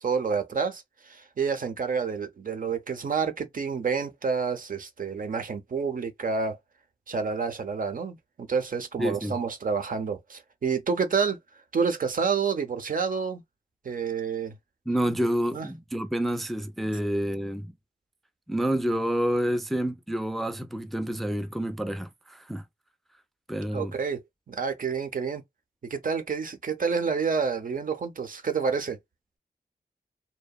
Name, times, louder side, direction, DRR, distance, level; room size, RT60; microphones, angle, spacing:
voice 1, 0.0-6.6 7.1-11.4 11.7-13.4 13.8-14.5 15.5-15.7 23.7-24.2 24.5-25.4 25.8-29.0, right 5 dB, 55° right, 0.6 m, -29 dB
voice 2, 9.0-9.4 14.9-17.7 18.5-22.6 23.5-23.9, equal, ahead, 0.4 m, -28 dB
2.8 x 2.1 x 2.2 m
wide cardioid pair, 75°, 17 cm